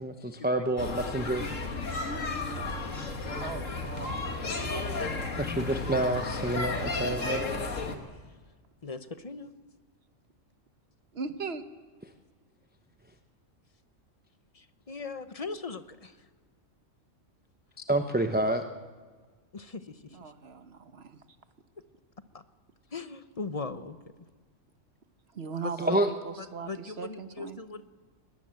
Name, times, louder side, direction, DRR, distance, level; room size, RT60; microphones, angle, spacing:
voice 1, 0.0-1.4 5.4-7.4 17.9-18.6 25.8-26.1, right 1 dB, 10° right, 5 dB, 0.8 m, -28 dB
sound 1, 0.8-8.0, left 3 dB, 80° left, 2.1 m, -33 dB
voice 2, 2.1-3.0 3.5-3.8 8.8-9.5 14.5-16.3 19.5-20.3 22.3-22.4 22.9-24.0 25.6-26.0 26.4-27.8, left 4 dB, 35° left, 11 dB, 0.8 m, -40 dB
voice 3, 3.4-4.1 11.1-11.6 20.1-21.2 25.3-27.6, right 5 dB, 55° right, 9 dB, 1.4 m, -39 dB
21.0 x 20.5 x 7.7 m, 1.4 s
omnidirectional pair, 1.3 m